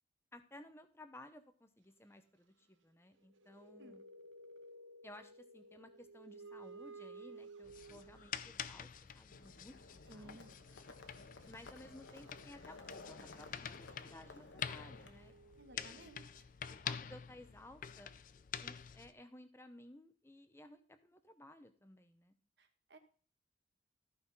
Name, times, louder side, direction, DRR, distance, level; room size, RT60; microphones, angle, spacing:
voice 1, 0.3-4.0 5.0-10.4 11.5-15.3 15.7-16.1 16.8-18.1 18.6-22.3, left 1 dB, 15° left, 9 dB, 0.8 m, -57 dB
sound 1, 3.2-8.6 10.4-10.5 10.7-16.2, right 3 dB, 85° right, 0.9 m, -56 dB
sound 2, 7.6-19.1, left 8 dB, 45° left, 0.4 m, -48 dB
Livestock farm animals working animals, 9.3-15.1, left 3 dB, 80° left, 1.2 m, -55 dB
voice 2, 10.1-10.5 15.6-16.4 22.6-23.0, right 1 dB, 60° right, 6 dB, 1.4 m, -57 dB
14.0 x 5.6 x 4.1 m, 0.42 s
head